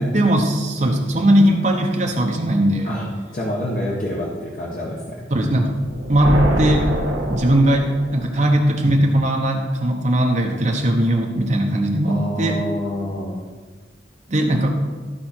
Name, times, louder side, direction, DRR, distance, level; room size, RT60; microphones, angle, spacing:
voice 1, 0.1-2.9 5.3-5.8 6.1-6.9 7.3-12.6 14.3-14.8, right 1 dB, 40° right, 1 dB, 0.9 m, -19 dB
voice 2, 3.3-5.2 8.3-8.5 12.1-13.4, equal, 45° left, -4 dB, 1.2 m, -27 dB
sound 1, 5.8-8.4, right 1 dB, 90° right, 1.6 m, -24 dB
13.0 x 5.2 x 4.4 m, 1.5 s
head